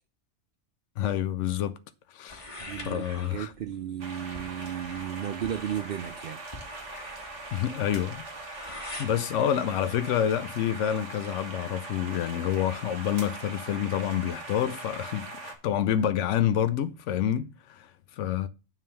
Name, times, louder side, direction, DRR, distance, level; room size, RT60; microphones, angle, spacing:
voice 1, 1.0-1.8 2.1-2.5 2.9-3.5 7.5-18.5, left 10 dB, 90° left, 0.9 m, -28 dB
sound 1, 2.3-9.1, left 2 dB, 30° left, 1.4 m, -45 dB
voice 2, 2.6-6.4, right 10 dB, 60° right, 0.6 m, -34 dB
sound 2, 4.0-15.5, right 2 dB, 90° right, 2.0 m, -41 dB
9.4 x 3.7 x 6.8 m
omnidirectional pair, 1.2 m